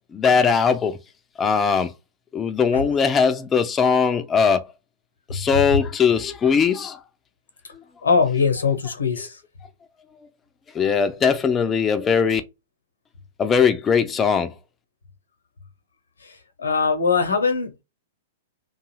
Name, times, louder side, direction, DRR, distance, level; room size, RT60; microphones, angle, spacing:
voice 1, 0.1-1.0 1.4-1.9 2.3-4.6 5.3-7.0 10.7-12.4 13.4-14.5, left 6 dB, 20° left, 0.3 m, -20 dB
voice 2, 8.0-9.4 16.6-17.8, left 5 dB, 80° left, 0.8 m, -21 dB
2.5 x 2.3 x 3.1 m
figure-of-eight pair, 105°, 0 cm